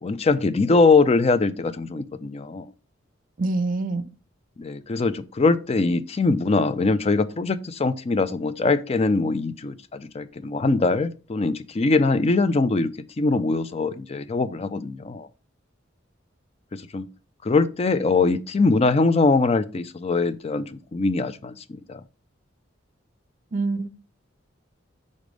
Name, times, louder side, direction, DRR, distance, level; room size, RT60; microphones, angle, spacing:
voice 1, 0.0-2.7 4.6-15.3 16.7-17.1 17.4-22.0, left 3 dB, 30° left, 0.4 m, -22 dB
voice 2, 3.4-4.0 23.5-24.0, right 3 dB, 45° right, 0.6 m, -25 dB
5.0 x 4.1 x 5.1 m
head